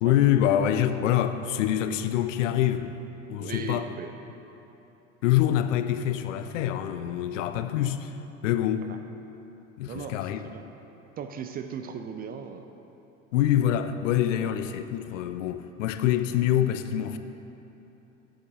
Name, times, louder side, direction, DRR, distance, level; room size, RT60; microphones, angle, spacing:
voice 1, 0.0-2.9 3.3-3.9 5.2-8.1 8.4-8.9 9.8-10.5 13.3-17.2, left 11 dB, 70° left, 0.5 m, -25 dB
voice 2, 3.4-4.1 8.9-9.0 9.9-10.6 11.2-12.7 14.3-14.5, right 7 dB, 25° right, 0.4 m, -38 dB
8.0 x 7.8 x 3.6 m
figure-of-eight pair, 70°, 39 cm